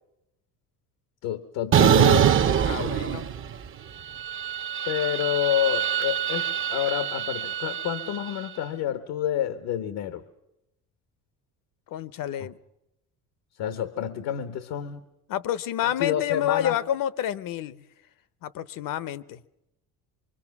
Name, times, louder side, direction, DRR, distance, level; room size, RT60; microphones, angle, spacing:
voice 1, 1.2-3.2 4.9-10.2 13.6-15.0 15.8-16.8, left 11 dB, 80° left, 1.3 m, -29 dB
sound 1, 1.7-3.7 4.0-8.3, right 9 dB, 35° right, 0.7 m, -24 dB
voice 2, 2.6-3.3 11.9-12.6 15.3-17.8 18.4-19.4, left 11 dB, 65° left, 0.9 m, -29 dB
24.5 x 24.0 x 6.0 m
cardioid pair, 110°, 36 cm